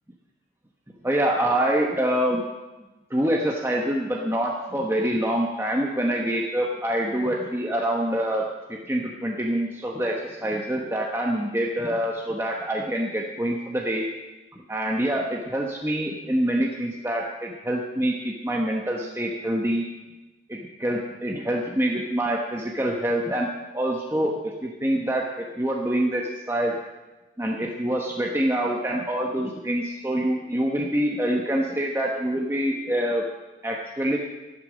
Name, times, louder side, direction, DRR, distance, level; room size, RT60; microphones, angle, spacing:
voice 1, 1.0-2.4 3.1-14.1 14.7-19.9 20.5-25.2 25.6-26.8 27.4-33.3 33.6-34.2, right 1 dB, 15° right, -1 dB, 1.1 m, -26 dB
12.5 x 12.0 x 6.4 m, 1.1 s
head